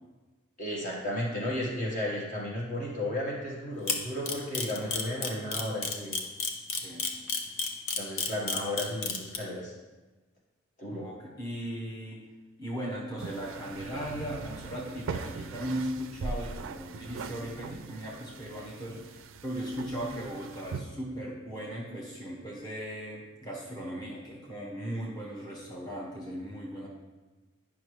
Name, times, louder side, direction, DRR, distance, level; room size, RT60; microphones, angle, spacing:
voice 1, 0.6-6.2 7.9-9.7 10.8-11.1, left 1 dB, 40° left, -4 dB, 1.4 m, -34 dB
Camera, 3.9-9.4, left 5 dB, 75° left, 0.8 m, -30 dB
voice 2, 6.7-7.1 10.9-12.2 12.6-26.9, equal, 20° left, -5 dB, 1.4 m, -38 dB
sound 1, 13.2-20.8, right 4 dB, 70° right, 0.4 m, -41 dB
9.5 x 5.9 x 3.1 m, 1.2 s
head